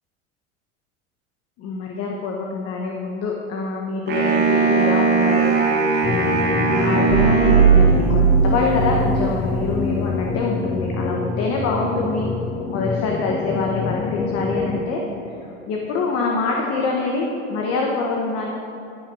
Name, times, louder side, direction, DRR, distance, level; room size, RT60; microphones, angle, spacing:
voice 1, 1.6-5.5 6.7-12.3 12.7-15.0 15.4-18.5, left 3 dB, 45° left, -1 dB, 1.3 m, -25 dB
Wind instrument woodwind instrument, 4.1-8.3, right 4 dB, 30° right, 2.5 m, -20 dB
sound 1, 6.0-14.8, left 4 dB, 15° left, 0.5 m, -25 dB
sound 2, 7.1-9.8, right 7 dB, 85° right, 0.7 m, -18 dB
12.5 x 5.9 x 6.3 m, 2.9 s
supercardioid pair, 130°, 34 cm